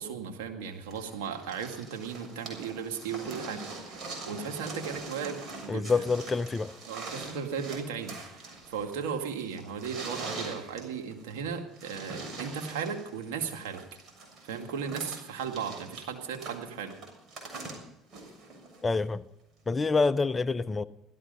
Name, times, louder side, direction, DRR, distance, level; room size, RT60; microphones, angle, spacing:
voice 1, 0.0-6.0 6.9-13.8 14.5-17.0, right 6 dB, 85° right, 2.2 m, -36 dB
sound 1, 0.9-19.0 20.0-20.1, right 3 dB, 50° right, 7.0 m, -43 dB
voice 2, 5.7-6.7 18.8-19.2 19.7-20.8, left 4 dB, 25° left, 0.7 m, -27 dB
16.5 x 13.5 x 5.5 m
hypercardioid pair, 70°, 0 cm